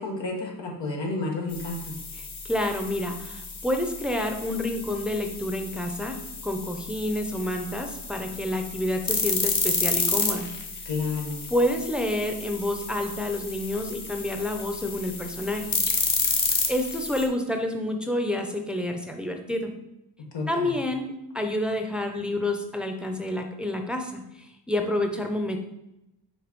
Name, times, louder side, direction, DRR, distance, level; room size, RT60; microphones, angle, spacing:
voice 1, 0.0-1.9 10.8-11.4 20.3-20.8, left 3 dB, 85° left, -1 dB, 1.6 m, -31 dB
sound 1, 1.5-17.3, left 4 dB, 50° left, 1.1 m, -31 dB
voice 2, 2.1-10.5 11.5-15.7 16.7-19.7 20.5-25.6, left 1 dB, ahead, 4 dB, 0.7 m, -29 dB
6.1 x 3.9 x 5.2 m, 0.90 s
wide cardioid pair, 95°, 42 cm